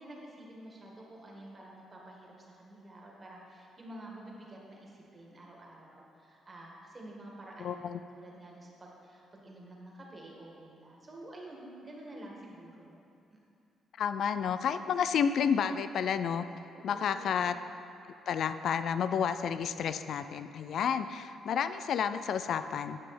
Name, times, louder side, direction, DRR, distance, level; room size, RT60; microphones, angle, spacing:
voice 1, 0.0-7.8 8.1-13.0 13.3-13.4 16.7-17.6, right 1 dB, 30° right, -2 dB, 1.7 m, -49 dB
voice 2, 7.6-8.0 14.0-16.5 16.8-17.5 18.3-23.0, left 7 dB, 65° left, 11 dB, 0.3 m, -30 dB
10.5 x 5.6 x 4.2 m, 2.6 s
cardioid pair, 90°, 0 cm